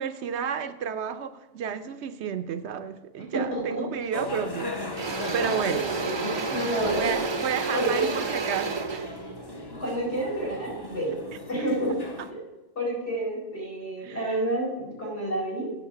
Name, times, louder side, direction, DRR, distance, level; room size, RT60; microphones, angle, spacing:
voice 1, 0.0-4.7 5.3-5.8 6.9-9.2 14.0-14.4, right 7 dB, 70° right, 0.8 m, -31 dB
voice 2, 3.3-3.9 5.7-7.1 7.7-8.1 9.8-11.2 11.5-12.0 12.3-12.4 12.8-15.7, right 1 dB, 75° left, 4.2 m, -29 dB
Engine / Drill, 4.0-4.2 4.6-10.7, right 4 dB, 35° right, 0.5 m, -31 dB
sound 1, 4.1-12.3, left 2 dB, 25° left, 0.7 m, -38 dB
8.0 x 6.9 x 5.8 m
omnidirectional pair, 1.2 m